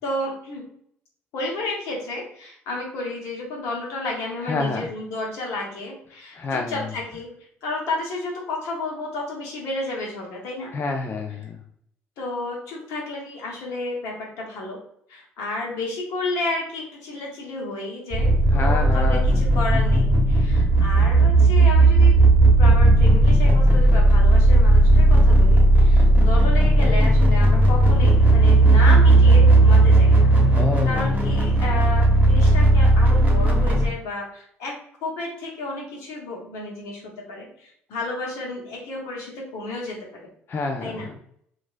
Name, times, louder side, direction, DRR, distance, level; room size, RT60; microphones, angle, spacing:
voice 1, 0.0-0.7 1.3-7.3 7.6-10.7 12.2-14.8 15.1-22.1 22.6-30.3 30.8-37.0 37.3-40.2 40.8-41.2, left 2 dB, 75° left, -1 dB, 1.0 m, -31 dB
voice 2, 4.4-4.9 6.3-6.9 10.7-11.6 18.5-19.5 30.5-31.0 40.5-41.1, left 3 dB, 45° left, 3 dB, 0.4 m, -28 dB
sound 1, 18.1-33.9, right 2 dB, 25° right, 0.9 m, -15 dB
2.9 x 2.5 x 2.4 m, 0.67 s
supercardioid pair, 65°, 5 cm